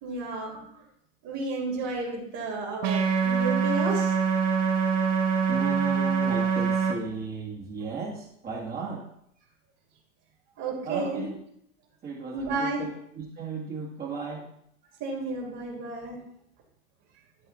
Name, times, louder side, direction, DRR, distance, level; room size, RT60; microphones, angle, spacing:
voice 1, 0.0-0.6 1.2-4.1 10.6-11.2 12.3-12.8 15.0-16.2, right 3 dB, 45° right, 0 dB, 2.8 m, -32 dB
sound 1, 2.8-6.9, right 6 dB, 75° right, 1.6 m, -24 dB
voice 2, 5.5-9.0 10.8-11.3 12.0-14.4, right 4 dB, 25° right, -2 dB, 1.7 m, -35 dB
12.0 x 4.0 x 4.1 m, 0.72 s
hypercardioid pair, 125°, 38 cm